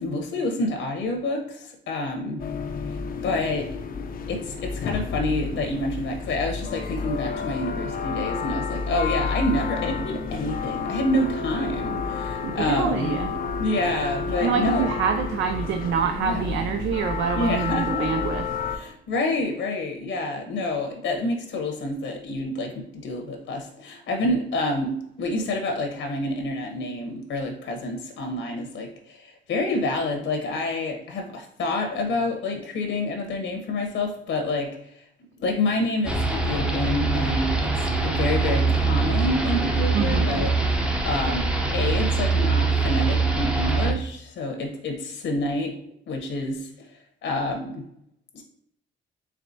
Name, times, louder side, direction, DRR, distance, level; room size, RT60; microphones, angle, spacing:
voice 1, 0.0-2.4 3.2-3.7 4.3-14.9 16.2-16.5 17.3-18.3 18.7-34.7 35.4-40.5 41.0-41.5 41.7-45.8 46.1-46.7 47.2-47.9 48.3-48.4, left 2 dB, 75° left, 3 dB, 0.9 m, -28 dB
sound 1, 2.4-18.8, left 5 dB, 50° left, 0.5 m, -30 dB
voice 2, 12.4-13.3 14.4-18.4 39.9-40.5, right 7 dB, 70° right, 6 dB, 0.4 m, -26 dB
sound 2, 36.0-43.9, right 3 dB, 5° right, 0.6 m, -23 dB
4.6 x 3.2 x 2.7 m, 0.72 s
cardioid pair, 90°, 20 cm